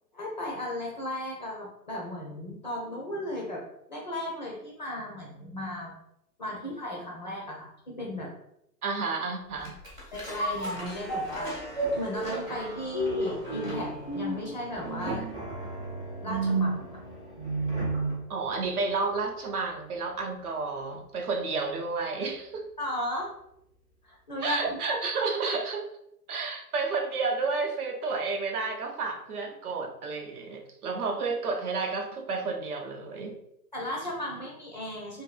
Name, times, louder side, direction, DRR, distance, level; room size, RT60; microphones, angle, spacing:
voice 1, 0.1-5.9 6.4-8.3 10.1-15.3 16.2-17.0 22.8-23.3 24.0-24.8 33.7-35.2, left 1 dB, 30° left, -2 dB, 0.3 m, -36 dB
voice 2, 8.8-9.7 18.3-22.7 24.4-25.8 26.3-33.3, right 4 dB, 65° right, 3 dB, 0.7 m, -31 dB
sound 1, 9.6-18.2 18.6-18.7, right 2 dB, 10° right, 0.6 m, -32 dB
2.6 x 2.6 x 2.3 m, 0.78 s
figure-of-eight pair, 115°, 48 cm